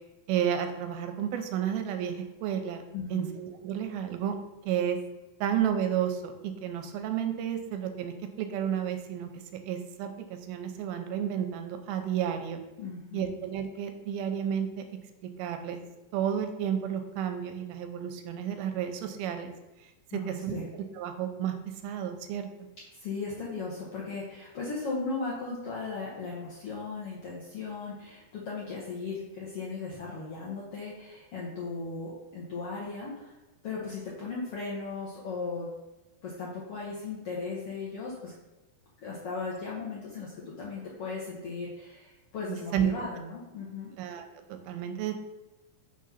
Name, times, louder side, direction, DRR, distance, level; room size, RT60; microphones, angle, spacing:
voice 1, 0.3-2.8 3.1-4.4 4.7-5.0 5.4-9.3 9.7-12.6 13.1-14.8 15.2-15.8 16.1-19.5 20.1-21.6 21.8-22.5 42.5-42.9 44.0-44.2 44.5-45.1, right 9 dB, 85° right, 7 dB, 2.5 m, -31 dB
voice 2, 2.9-3.3 12.8-13.2 20.1-20.7 23.0-33.3 33.6-35.7 36.2-38.3 39.0-43.9, left 4 dB, 80° left, -5 dB, 1.3 m, -37 dB
5.7 x 3.7 x 5.6 m, 1.1 s
omnidirectional pair, 4.3 m